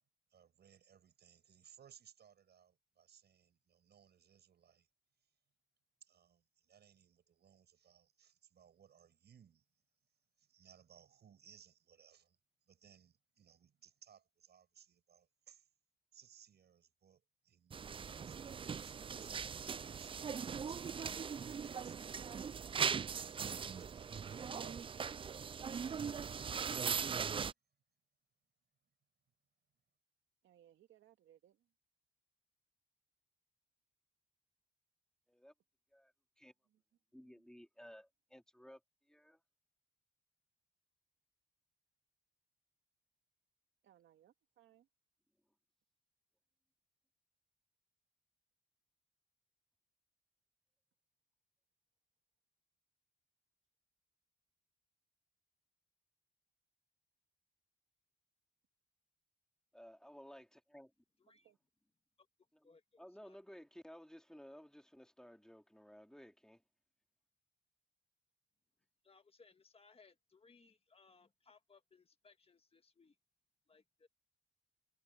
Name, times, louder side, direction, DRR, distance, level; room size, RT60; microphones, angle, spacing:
voice 1, 0.3-4.9 6.0-9.6 10.4-12.4 12.7-15.6 16.1-22.3 22.8-24.9 25.6-26.2, right 8 dB, 55° right, 6.8 m, -64 dB
sound 1, 17.7-27.5, right 6 dB, 25° right, 0.4 m, -40 dB
voice 2, 30.4-31.7 36.7-36.8 37.2-37.4 43.8-44.9 61.3-61.6, right 11 dB, 75° right, 2.0 m, -67 dB
voice 3, 35.9-36.5 37.1-38.8 39.1-39.4 59.7-60.9 62.6-66.6, equal, 5° left, 3.0 m, -57 dB
voice 4, 61.2-61.5 62.2-62.3 62.6-63.4 69.0-73.2 73.7-74.1, left 4 dB, 30° left, 1.8 m, -66 dB
cardioid pair, 90°, 20 cm